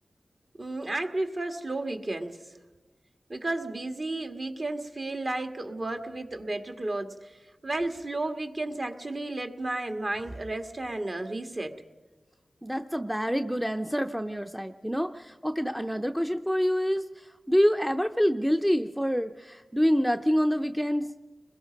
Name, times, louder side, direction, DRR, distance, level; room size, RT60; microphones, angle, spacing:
voice 1, 0.5-2.4 3.3-7.4 7.6-11.8, right 2 dB, 40° right, 5 dB, 1.9 m, -33 dB
voice 2, 12.6-21.1, equal, 5° right, 6 dB, 0.7 m, -27 dB
30.0 x 21.5 x 5.3 m, 1.2 s
wide cardioid pair, 70°, 0 cm